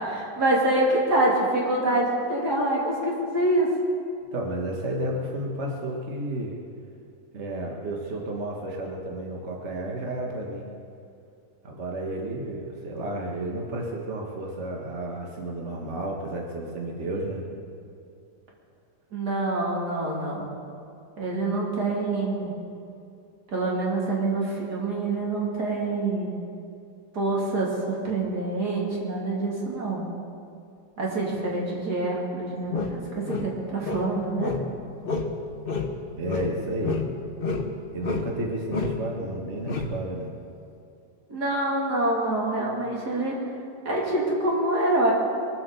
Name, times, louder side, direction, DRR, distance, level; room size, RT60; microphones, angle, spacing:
voice 1, 0.0-3.7 19.1-20.5 21.2-22.5 23.5-26.4 27.1-30.1 31.0-34.5 41.3-43.5 43.8-45.1, right 2 dB, 75° right, -3 dB, 3.5 m, -26 dB
voice 2, 4.3-6.6 7.3-10.7 11.6-17.5 36.2-37.1 37.9-40.3, right 1 dB, 45° right, 0 dB, 1.7 m, -32 dB
sound 1, 32.7-34.8 35.0-35.4 35.7-37.7 38.0-38.4 38.7-39.0 39.6-40.0, left 4 dB, 40° left, 1.1 m, -29 dB
23.0 x 7.8 x 6.9 m, 2.6 s
omnidirectional pair, 1.7 m